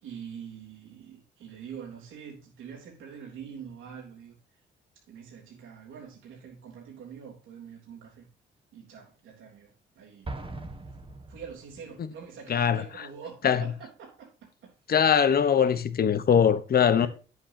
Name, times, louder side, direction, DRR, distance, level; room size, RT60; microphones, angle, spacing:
voice 1, 0.0-4.4 5.1-8.3 8.7-10.3 11.3-14.7 17.0-17.1, right 7 dB, 85° right, 3.4 m, -45 dB
Explosion, 10.2-12.0, right 2 dB, 25° right, 1.7 m, -40 dB
voice 2, 12.5-13.1 13.4-13.6 14.9-17.1, left 8 dB, 50° left, 1.1 m, -22 dB
10.0 x 8.1 x 2.9 m
cardioid pair, 90°, 20 cm